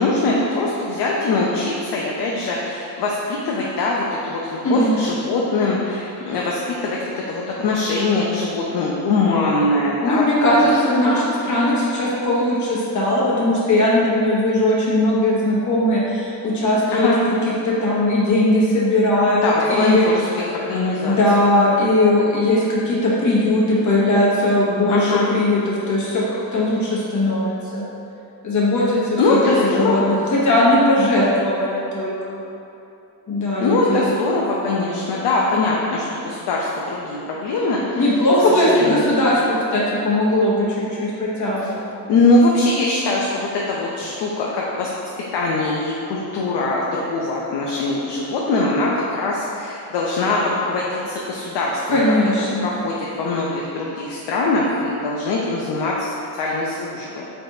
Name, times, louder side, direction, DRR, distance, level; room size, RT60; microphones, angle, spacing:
voice 1, 0.0-10.2 10.5-10.7 16.9-17.2 19.4-21.2 24.9-25.3 29.2-30.1 33.6-38.0 38.5-39.2 42.1-44.9 45.3-52.0 52.6-56.1 56.4-57.2, left 2 dB, 80° left, -3 dB, 0.6 m, -22 dB
voice 2, 4.6-5.0 10.0-17.3 17.6-20.0 21.0-26.2 26.5-27.9 28.4-32.4 33.3-34.1 38.0-41.8 51.9-52.7, left 1 dB, 45° left, -6 dB, 1.1 m, -19 dB
4.2 x 3.3 x 2.7 m, 2.8 s
cardioid pair, 120°, 40 cm